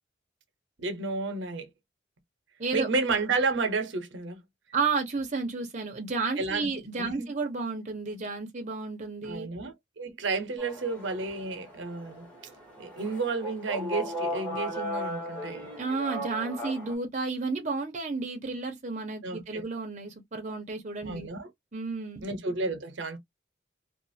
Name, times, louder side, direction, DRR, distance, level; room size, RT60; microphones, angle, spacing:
voice 1, 0.8-1.7 2.7-4.4 6.4-7.3 9.2-12.3 12.8-15.7 19.2-19.6 21.1-21.5 22.2-23.2, right 3 dB, 80° right, 0.7 m, -31 dB
voice 2, 4.7-9.5 15.8-21.3 21.7-22.3, right 4 dB, 40° right, 0.7 m, -32 dB
sound 1, 10.6-16.9, equal, 5° left, 1.0 m, -37 dB
2.4 x 2.4 x 2.6 m
head